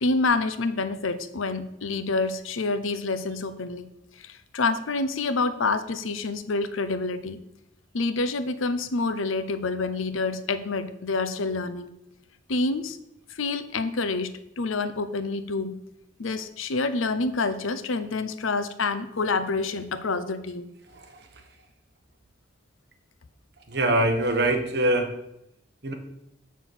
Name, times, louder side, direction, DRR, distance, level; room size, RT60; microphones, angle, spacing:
voice 1, 0.0-3.9 4.2-7.4 7.9-11.9 12.5-13.0 13.3-15.8 16.2-20.7, left 3 dB, 85° left, 12 dB, 0.7 m, -27 dB
voice 2, 23.7-25.1 25.8-25.9, right 1 dB, 55° right, 4 dB, 1.4 m, -23 dB
6.2 x 6.0 x 7.2 m, 0.81 s
head